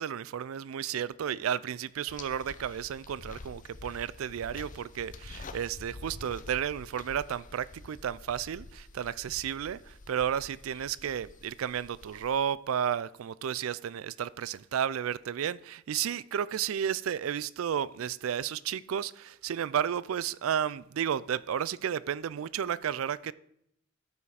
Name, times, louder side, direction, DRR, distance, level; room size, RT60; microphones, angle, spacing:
voice 1, 0.0-23.3, right 9 dB, 75° right, 0.4 m, -32 dB
goat rocks walking, 2.1-12.4, left 3 dB, 40° left, 0.6 m, -48 dB
12.0 x 5.7 x 4.9 m
head